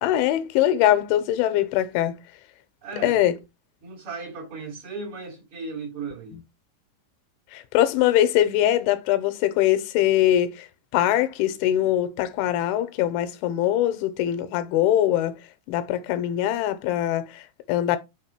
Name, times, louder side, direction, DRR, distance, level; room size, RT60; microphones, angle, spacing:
voice 1, 0.0-2.2 3.0-3.4 6.3-6.4 7.5-10.7 10.9-15.4 15.7-18.0, left 12 dB, 85° left, 3.0 m, -22 dB
voice 2, 2.8-3.2 3.8-6.4, right 4 dB, 50° right, 1.7 m, -36 dB
6.6 x 4.3 x 4.2 m
omnidirectional pair, 5.5 m